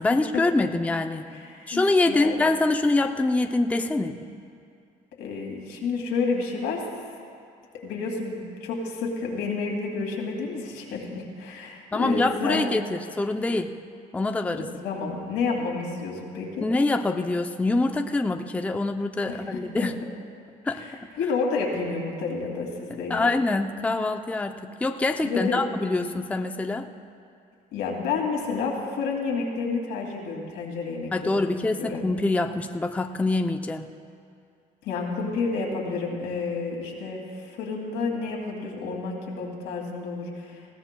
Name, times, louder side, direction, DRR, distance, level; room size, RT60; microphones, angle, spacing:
voice 1, 0.0-1.3 1.7-4.2 11.9-13.7 14.1-14.7 16.6-19.9 20.6-20.8 23.1-26.9 31.1-33.9, left 2 dB, 10° left, 6 dB, 0.5 m, -25 dB
voice 2, 1.3-2.4 5.2-6.8 7.8-12.7 14.5-16.7 19.3-19.9 20.7-23.3 25.2-25.6 27.7-32.0 34.8-40.7, left 4 dB, 85° left, -1 dB, 2.5 m, -30 dB
20.5 x 15.5 x 2.2 m, 2.3 s
cardioid pair, 110°, 17 cm